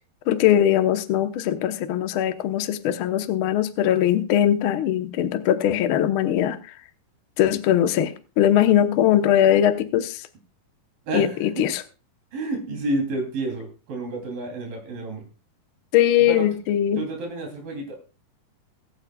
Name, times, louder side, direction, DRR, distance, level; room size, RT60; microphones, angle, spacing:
voice 1, 0.3-6.6 7.4-10.2 11.1-11.8 15.9-17.0, left 11 dB, 90° left, 9 dB, 1.1 m, -20 dB
voice 2, 11.1-11.5 12.3-15.3 16.3-16.4 17.0-18.0, right 2 dB, 85° right, 1 dB, 4.8 m, -29 dB
23.0 x 8.8 x 2.3 m, 0.33 s
omnidirectional pair, 3.9 m